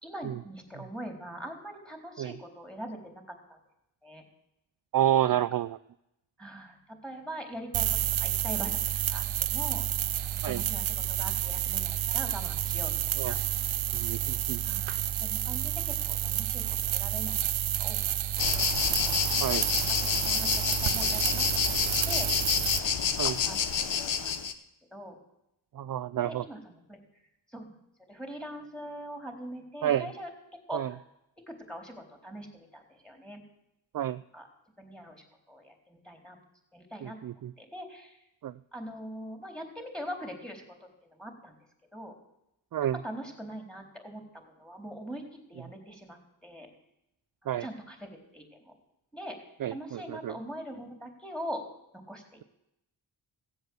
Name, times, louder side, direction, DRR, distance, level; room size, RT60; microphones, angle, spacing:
voice 1, 0.0-3.6 4.0-4.2 6.4-7.9 8.2-8.8 9.1-9.8 10.2-13.4 14.6-17.4 17.8-18.0 18.4-18.7 20.2-21.8 22.1-22.3 22.8-23.6 24.0-24.4 24.9-25.1 26.2-27.0 27.5-27.7 28.1-30.3 30.7-31.0 31.5-33.4 34.3-34.5 34.8-36.4 36.7-37.2 37.6-38.2 38.7-40.7 41.1-41.6 41.9-42.2 43.0-45.2 45.5-46.7 47.4-48.7 49.1-49.4 49.7-51.7 51.9-52.4, equal, ahead, 3 dB, 4.0 m, -42 dB
voice 2, 4.9-5.8 10.4-10.6 13.2-13.3 13.9-14.6 19.4-19.7 23.2-23.4 25.8-26.4 29.8-30.1 30.7-30.9 33.9-34.2 37.0-37.5 38.4-38.5 42.7-43.0 47.5-47.7 49.6-50.4, right 11 dB, 50° right, 14 dB, 0.5 m, -29 dB
sound 1, 7.7-22.8, right 12 dB, 80° right, 0.7 m, -30 dB
sound 2, 18.4-24.5, left 7 dB, 70° left, 1.1 m, -28 dB
16.0 x 7.9 x 8.0 m, 0.84 s
cardioid pair, 50°, 46 cm